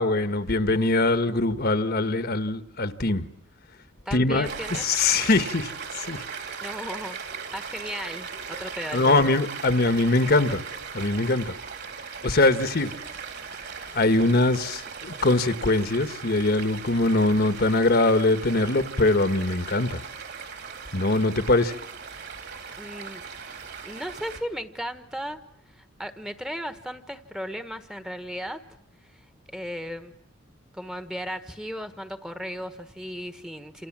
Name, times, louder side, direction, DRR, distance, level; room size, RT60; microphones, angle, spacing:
voice 1, 0.0-3.3 4.1-4.5 4.8-6.2 8.9-10.6 10.9-11.5 12.2-12.9 13.9-20.0 20.9-21.8, left 2 dB, 50° left, 10 dB, 1.3 m, -22 dB
voice 2, 4.0-4.8 6.3-7.2 7.5-9.3 22.8-23.5 23.8-25.4 25.7-28.6 29.0-29.3 29.5-30.1 30.7-33.9, equal, 5° right, 9 dB, 1.3 m, -36 dB
Stream, 4.4-24.4, right 6 dB, 55° right, 3.8 m, -38 dB
28.5 x 28.0 x 7.4 m, 0.71 s
head